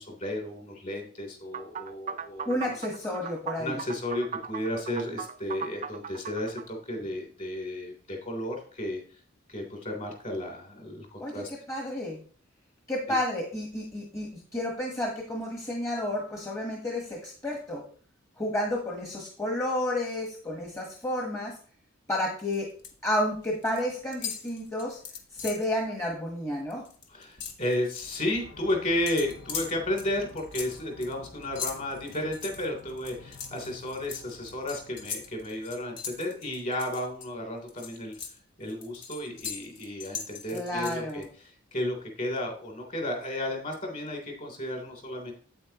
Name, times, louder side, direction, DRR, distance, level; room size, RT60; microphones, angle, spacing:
voice 1, 0.0-2.8 3.6-9.0 9.5-11.5 27.1-38.1 38.6-45.3, left 1 dB, 40° left, 2 dB, 3.3 m, -33 dB
sound 1, 1.5-6.7, right 7 dB, 40° right, 0.5 m, -38 dB
voice 2, 2.5-3.8 11.2-12.2 12.9-17.8 18.4-21.6 22.1-22.7 23.0-25.0 25.3-26.9 40.5-41.3, left 1 dB, 15° left, -1 dB, 1.3 m, -31 dB
sound 2, 22.4-23.1 23.3-23.8 24.1-25.7 26.1-26.3 26.6-28.2 29.1-37.3 37.7-41.3, left 6 dB, 60° left, 1.4 m, -40 dB
sound 3, 28.2-36.0, left 2 dB, 75° left, 1.3 m, -51 dB
8.7 x 8.6 x 3.0 m, 0.44 s
head